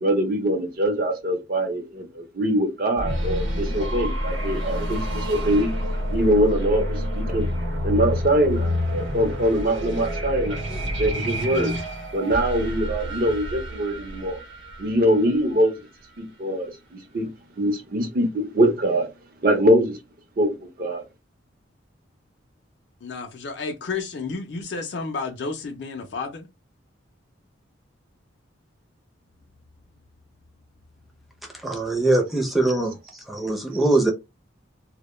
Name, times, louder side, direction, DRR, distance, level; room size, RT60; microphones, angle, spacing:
voice 1, 0.0-5.7 6.1-7.5 7.8-11.7 12.1-14.4 14.8-15.8 16.2-17.3 17.6-19.1 19.4-20.0 20.4-21.0, right 1 dB, 50° right, 0.5 m, -23 dB
sound 1, 3.0-15.7, equal, 75° right, 0.8 m, -28 dB
voice 2, 23.0-26.5, left 4 dB, 60° left, 0.4 m, -31 dB
voice 3, 31.6-34.1, right 2 dB, ahead, 0.5 m, -22 dB
2.1 x 2.1 x 3.0 m
head